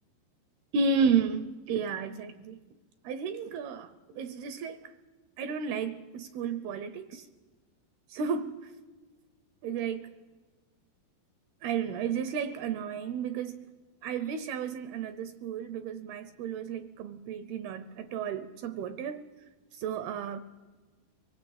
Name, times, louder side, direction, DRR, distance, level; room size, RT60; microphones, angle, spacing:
voice 1, 0.7-2.6 3.0-4.8 5.4-7.3 8.1-8.6 9.6-10.1 11.6-13.6 14.0-19.3 19.8-20.4, right 6 dB, 75° right, 12 dB, 2.5 m, -32 dB
24.5 x 18.0 x 8.7 m, 1.3 s
omnidirectional pair, 5.0 m